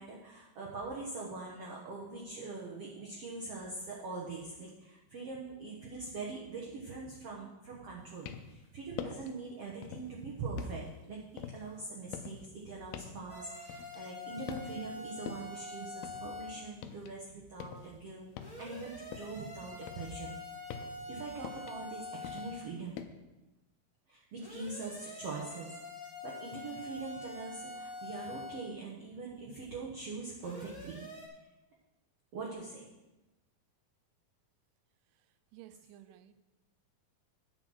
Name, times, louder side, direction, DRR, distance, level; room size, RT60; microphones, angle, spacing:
voice 1, 0.0-11.2 11.5-18.3 18.6-20.3 21.1-23.0 24.1-25.8 26.2-31.0 32.3-32.9, right 3 dB, 65° right, -3 dB, 1.5 m, -43 dB
sound 1, 8.0-8.6 9.0-9.4 9.8-10.2 10.6-14.2 14.5-15.0 15.3-17.2 17.4-19.5 19.8-23.1, left 9 dB, 85° left, 2.4 m, -46 dB
sound 2, 13.3-16.7 18.4-22.7 24.4-28.7 30.4-31.3, left 2 dB, 15° left, 1.3 m, -45 dB
voice 2, 35.5-36.4, right 13 dB, 85° right, 12 dB, 1.9 m, -54 dB
9.6 x 6.2 x 6.2 m, 1.0 s
omnidirectional pair, 4.3 m